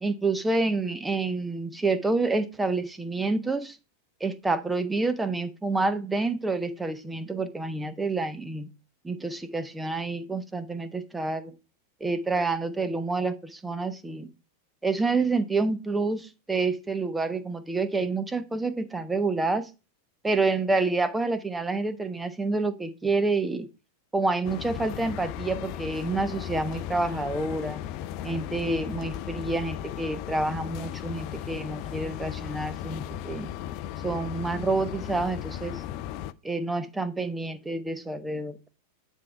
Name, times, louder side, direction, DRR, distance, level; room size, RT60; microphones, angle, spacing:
voice 1, 0.0-3.8 4.2-8.7 9.0-11.5 12.0-14.3 14.8-19.7 20.2-23.7 24.1-27.8 28.2-33.5 34.0-35.8 36.4-38.7, right 3 dB, 10° right, 0.8 m, -28 dB
sound 1, 24.4-36.3, left 11 dB, 40° left, 0.4 m, -36 dB
9.6 x 3.6 x 4.5 m
figure-of-eight pair, 90°, 0 cm